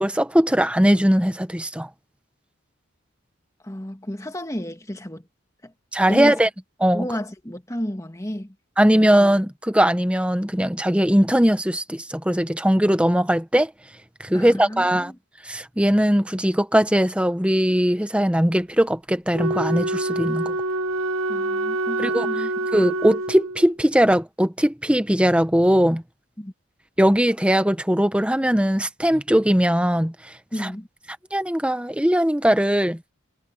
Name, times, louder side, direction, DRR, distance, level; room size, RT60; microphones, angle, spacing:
voice 1, 0.0-1.9 5.9-6.5 6.8-7.1 8.8-13.7 14.2-15.1 15.4-20.6 22.0-22.3 22.7-26.0 27.0-30.1 30.6-30.7 31.3-33.0, equal, 5° right, 1.0 m, -20 dB
voice 2, 3.6-5.3 5.6-5.7 6.1-6.4 6.9-8.6 8.9-9.2 14.3-15.2 21.3-22.5 26.4-26.5 30.5-30.9, equal, 15° left, 1.8 m, -31 dB
Wind instrument woodwind instrument, 19.3-23.8, right 2 dB, 80° right, 1.0 m, -26 dB
head